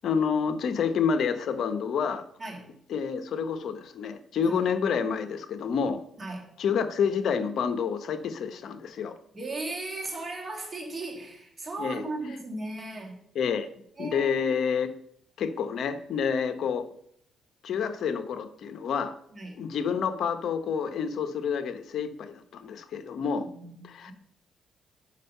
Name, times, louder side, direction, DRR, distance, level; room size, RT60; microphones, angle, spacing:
voice 1, 0.0-2.2 2.9-6.0 6.6-9.1 11.8-12.0 13.3-13.7 14.0-14.9 15.4-16.8 17.6-19.1 19.6-23.5 23.8-24.1, left 6 dB, 65° left, 9 dB, 0.9 m, -28 dB
voice 2, 2.4-2.7 4.4-4.6 6.2-6.5 9.3-13.2 14.0-14.6 19.3-19.7 23.4-24.1, right 2 dB, 30° right, 1 dB, 2.3 m, -37 dB
6.3 x 5.5 x 5.5 m, 0.71 s
cardioid pair, 90°, 0 cm